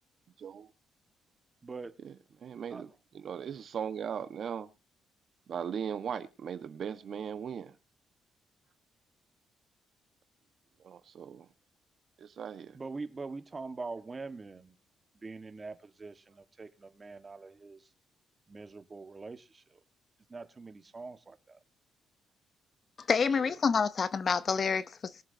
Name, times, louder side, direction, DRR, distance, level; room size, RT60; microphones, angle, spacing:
voice 1, 0.4-0.7 2.0-4.7 5.5-7.8 10.8-11.5 12.2-12.8, right 7 dB, 60° right, 1.4 m, -38 dB
voice 2, 1.6-1.9 2.7-2.8 12.7-14.7 15.1-17.9 18.5-19.8 20.3-21.6, right 3 dB, 30° right, 1.7 m, -43 dB
voice 3, 23.0-25.2, left 5 dB, 45° left, 0.9 m, -28 dB
22.0 x 7.4 x 2.9 m
cardioid pair, 90°, 0 cm